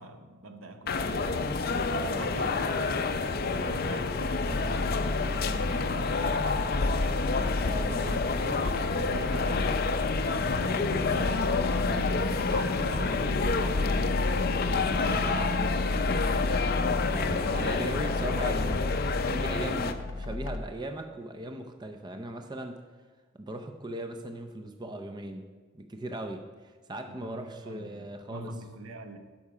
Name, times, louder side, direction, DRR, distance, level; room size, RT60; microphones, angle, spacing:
voice 1, 0.0-1.6 2.2-7.3 7.9-8.2 8.4-9.8 10.3-14.5 15.0-15.6 16.0-16.5 27.2-29.2, right 2 dB, 85° right, 0.9 m, -42 dB
sound 1, 0.9-19.9, left 4 dB, 45° left, 0.5 m, -29 dB
sound 2, 3.7-20.6, left 2 dB, 85° left, 0.7 m, -33 dB
voice 2, 14.7-15.5 17.1-22.8 23.3-25.5 25.7-28.5, right 1 dB, 20° right, 0.5 m, -38 dB
12.0 x 5.5 x 4.9 m
head